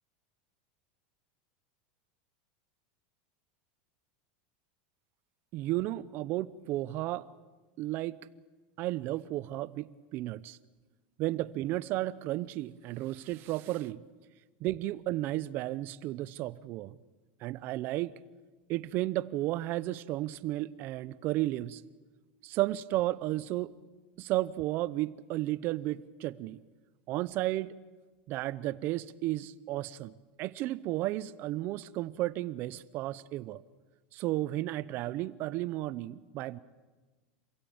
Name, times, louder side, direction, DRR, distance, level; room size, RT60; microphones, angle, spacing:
voice 1, 5.5-7.3 7.8-8.2 8.8-10.6 11.2-14.0 14.6-17.0 17.4-18.1 18.7-21.8 22.4-23.7 24.2-26.6 27.1-27.7 28.3-30.1 30.4-33.6 34.1-36.6, right 16 dB, 40° right, 18 dB, 0.7 m, -33 dB
27.5 x 16.5 x 8.8 m, 1.3 s
supercardioid pair, 155°, 5 cm